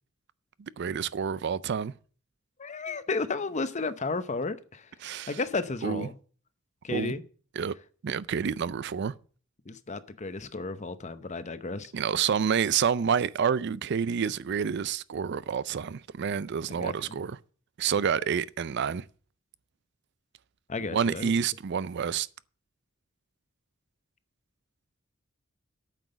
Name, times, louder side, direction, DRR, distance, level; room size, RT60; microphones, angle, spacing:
voice 1, 0.6-1.9 5.0-5.4 5.8-6.1 6.9-7.1 7.6-7.7 8.0-9.1 11.9-17.4 17.8-19.0 20.9-22.3, right 7 dB, 55° right, 0.4 m, -28 dB
voice 2, 2.6-4.9 5.3-6.2 6.8-7.2 9.7-11.9 16.7-17.2 20.7-21.3, left 3 dB, 35° left, 0.8 m, -33 dB
8.9 x 6.1 x 7.8 m
head